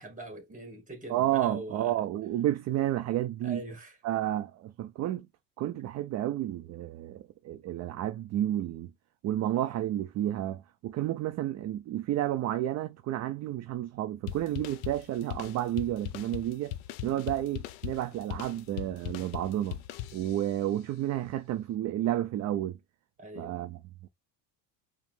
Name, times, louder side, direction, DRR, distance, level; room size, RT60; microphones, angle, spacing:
voice 1, 0.0-2.0 3.4-4.0 23.2-23.7, right 2 dB, 15° right, 1.9 m, -42 dB
voice 2, 1.1-3.6 4.0-5.3 5.6-8.9 9.2-16.8 17.0-19.8 20.1-22.8 23.4-24.1, right 13 dB, 35° right, 0.4 m, -31 dB
sound 1, 14.3-20.6, left 14 dB, 60° left, 0.6 m, -40 dB
4.8 x 2.0 x 3.5 m
supercardioid pair, 100°, 49 cm